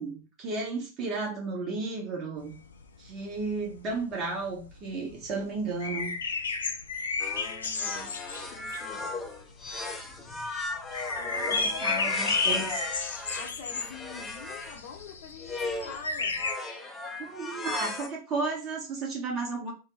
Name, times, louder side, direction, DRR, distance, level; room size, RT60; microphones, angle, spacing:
voice 1, 0.0-2.5 3.0-6.1 11.5-12.8 17.2-19.7, right 3 dB, 30° right, -1 dB, 1.3 m, -33 dB
sound 1, 2.5-9.8 10.1-10.4 10.6-16.5, left 4 dB, 70° left, 0.4 m, -32 dB
sound 2, 7.2-14.8 15.4-16.0 16.4-18.1, left 3 dB, 15° left, 0.6 m, -36 dB
voice 2, 7.3-8.2 8.5-9.1 10.6-10.7 11.1-12.4 13.3-16.4, left 5 dB, 50° left, 3 dB, 0.8 m, -45 dB
3.4 x 2.2 x 3.0 m, 0.32 s
figure-of-eight pair, 90°, 0 cm